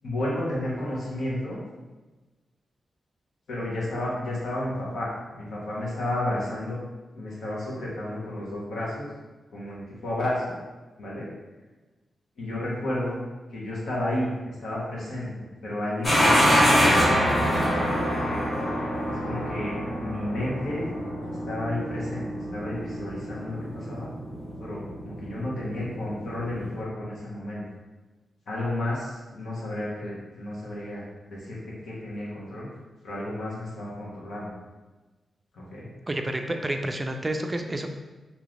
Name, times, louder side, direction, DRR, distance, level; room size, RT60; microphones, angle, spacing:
voice 1, 0.0-1.6 3.5-6.8 7.1-9.1 9.5-10.5 11.0-11.3 12.4-13.2 13.5-17.5 18.3-18.5 19.1-20.9 21.5-24.1 24.6-27.6 28.5-32.7 33.0-34.5 35.5-35.9, left 1 dB, 80° left, -6 dB, 1.4 m, -32 dB
sound 1, 16.0-26.8, equal, 40° left, 1.5 m, -26 dB
voice 2, 36.1-37.9, right 1 dB, 25° right, 5 dB, 0.3 m, -29 dB
3.7 x 2.9 x 3.2 m, 1.2 s
cardioid pair, 95°, 0 cm